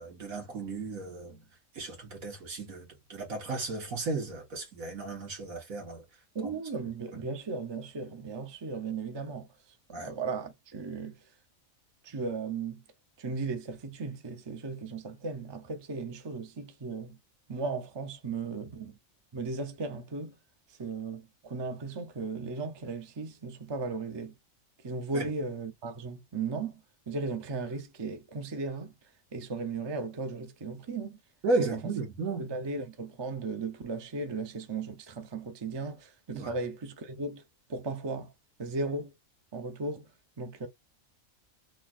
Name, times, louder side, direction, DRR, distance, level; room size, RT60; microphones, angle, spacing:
voice 1, 0.0-1.5 1.7-6.0 6.4-6.5 7.1-7.2 9.9-10.1 25.1-25.3 31.4-32.5 36.3-36.5, right 3 dB, 90° right, 1.9 m, -34 dB
voice 2, 6.3-9.5 10.0-11.1 12.0-12.8 13.2-17.2 17.5-19.0 19.3-20.3 20.8-24.3 24.8-28.9 29.3-31.2 31.6-31.9 32.4-37.4 37.7-38.3 38.6-39.1 39.5-40.1 40.4-40.7, right 3 dB, 30° right, 0.5 m, -36 dB
4.1 x 2.7 x 2.4 m
omnidirectional pair, 1.4 m